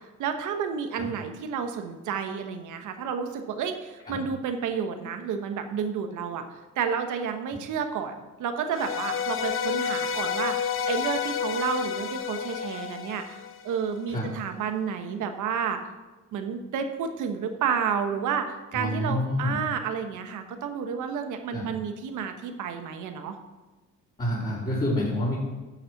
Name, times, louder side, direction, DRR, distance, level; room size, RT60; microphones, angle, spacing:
voice 1, 0.2-6.4 6.8-13.2 13.6-15.8 16.3-23.4, right 7 dB, 85° right, 6 dB, 1.2 m, -30 dB
sound 1, 8.7-13.9, left 7 dB, 45° left, 0.7 m, -30 dB
voice 2, 18.7-19.6 21.5-21.7 24.2-25.4, left 1 dB, 25° left, -8 dB, 3.3 m, -28 dB
10.5 x 6.8 x 5.9 m, 1.2 s
cardioid pair, 90°, 30 cm